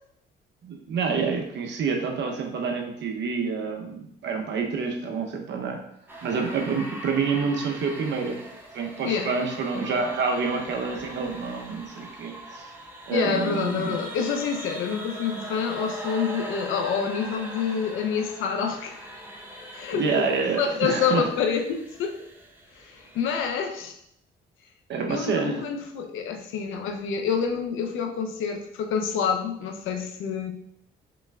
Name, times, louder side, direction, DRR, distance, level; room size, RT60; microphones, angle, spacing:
voice 1, 0.6-5.8 6.2-8.4 8.7-12.7 13.1-14.0 19.9-21.3 24.9-25.6, right 5 dB, 65° right, 2 dB, 0.8 m, -28 dB
sound 1, 6.1-23.5, right 1 dB, 10° right, 0.8 m, -41 dB
voice 2, 13.1-19.1 19.7-20.0 20.6-22.2 23.1-24.0 25.1-30.5, left 6 dB, 90° left, 4 dB, 0.6 m, -27 dB
5.2 x 3.4 x 2.3 m, 0.74 s
cardioid pair, 90°, 20 cm